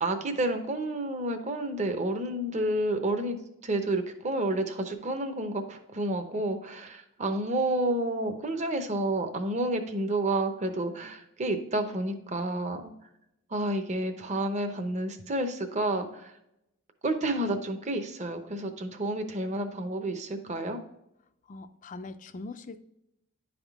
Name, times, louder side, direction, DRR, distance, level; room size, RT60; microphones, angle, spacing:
voice 1, 0.0-3.4 3.6-12.9 13.5-16.3 17.0-20.8, right 1 dB, 35° right, 6 dB, 0.7 m, -30 dB
voice 2, 21.5-22.8, left 3 dB, 35° left, 11 dB, 0.4 m, -41 dB
10.5 x 3.6 x 3.6 m, 0.84 s
head